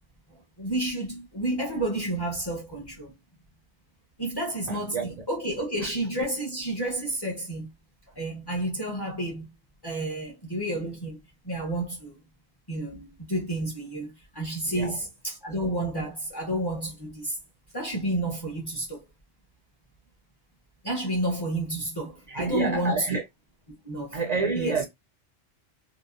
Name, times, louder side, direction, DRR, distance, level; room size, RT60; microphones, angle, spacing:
voice 1, 0.3-3.1 4.2-7.7 8.1-9.5 9.8-11.2 11.4-12.2 12.7-17.4 17.7-19.0 20.8-23.1 23.8-24.2 24.6-24.8, right 1 dB, 25° left, 0.6 m, -30 dB
voice 2, 4.7-5.1 5.8-5.9 14.7-15.0 22.3-23.2 24.1-24.8, right 3 dB, 60° right, 0.4 m, -29 dB
2.8 x 2.0 x 2.3 m
omnidirectional pair, 1.2 m